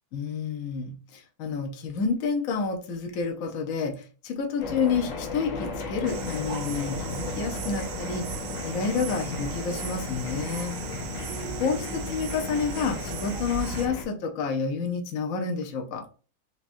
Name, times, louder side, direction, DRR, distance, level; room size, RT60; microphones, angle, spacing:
voice 1, 0.1-8.2 8.6-10.7 11.6-16.0, left 5 dB, 55° left, 3 dB, 1.1 m, -29 dB
sound 1, 4.6-14.0, left 4 dB, 80° left, 2.0 m, -35 dB
sound 2, 6.1-13.9, right 9 dB, 75° right, 0.9 m, -37 dB
6.2 x 2.9 x 2.7 m, 0.37 s
omnidirectional pair, 2.2 m